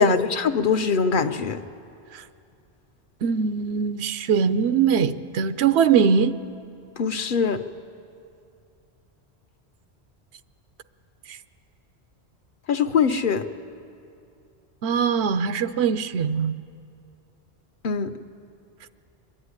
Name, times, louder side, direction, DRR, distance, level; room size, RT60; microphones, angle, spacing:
voice 1, 0.0-1.6 7.0-7.6 12.7-13.5 17.8-18.1, left 6 dB, 55° left, 8 dB, 0.8 m, -22 dB
voice 2, 3.2-6.4 11.3-11.4 14.8-16.5, right 6 dB, 80° right, 12 dB, 0.9 m, -22 dB
24.0 x 11.0 x 9.7 m, 2.5 s
omnidirectional pair, 1.1 m